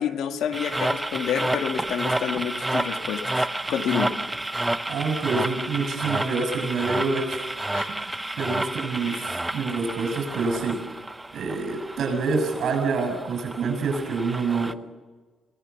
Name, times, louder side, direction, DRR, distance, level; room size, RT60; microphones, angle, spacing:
voice 1, 0.0-4.1 7.7-7.9 9.1-9.3, left 8 dB, 80° left, 6 dB, 2.0 m, -29 dB
sound 1, 0.5-14.7, right 1 dB, 10° right, 0.8 m, -30 dB
voice 2, 4.6-7.5 7.9-10.8 11.3-14.8, right 4 dB, 65° right, 7 dB, 6.9 m, -27 dB
26.5 x 18.0 x 7.1 m, 1.3 s
cardioid pair, 90°, 0 cm